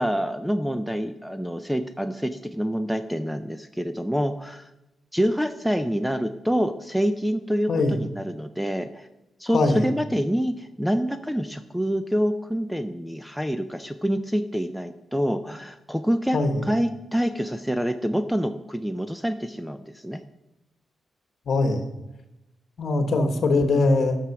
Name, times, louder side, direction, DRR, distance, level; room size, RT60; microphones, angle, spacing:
voice 1, 0.0-4.7 5.1-9.1 9.4-16.4 16.7-20.2, equal, ahead, 9 dB, 0.4 m, -26 dB
voice 2, 9.5-9.9 16.3-16.6 21.5-21.8 22.8-24.2, left 2 dB, 50° left, 7 dB, 1.2 m, -21 dB
11.0 x 6.1 x 5.8 m, 0.98 s
wide cardioid pair, 160°, 0 cm